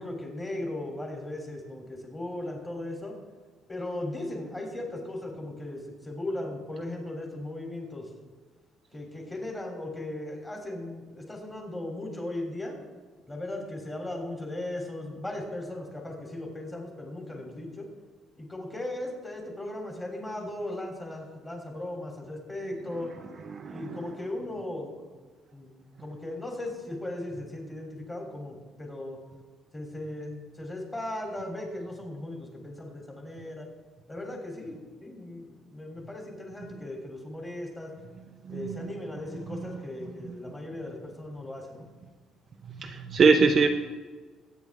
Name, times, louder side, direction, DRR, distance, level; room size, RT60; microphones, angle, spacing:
voice 1, 0.0-3.2 3.7-8.1 8.9-12.8 13.3-17.9 18.4-23.1 23.6-24.9 25.5-29.2 29.7-33.7 34.1-37.9 38.5-41.9, left 1 dB, 15° left, 1 dB, 3.3 m, -37 dB
voice 2, 38.5-38.9 42.7-43.7, right 4 dB, 35° right, 4 dB, 0.8 m, -23 dB
22.0 x 9.5 x 3.6 m, 1.4 s
cardioid pair, 145°, 0 cm